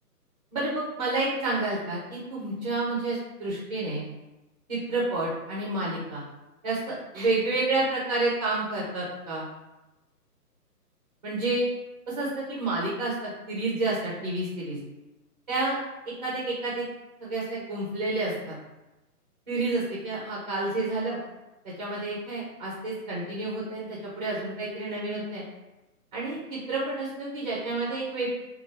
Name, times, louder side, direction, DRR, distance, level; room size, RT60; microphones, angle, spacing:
voice 1, 0.5-4.0 4.7-6.2 6.6-9.5 11.2-11.7 12.1-14.8 15.5-15.8 16.2-16.8 17.2-18.5 19.5-21.2 21.8-25.4 26.1-28.3, right 2 dB, 30° right, -6 dB, 0.5 m, -29 dB
2.6 x 2.4 x 3.2 m, 1.0 s
hypercardioid pair, 150°, 47 cm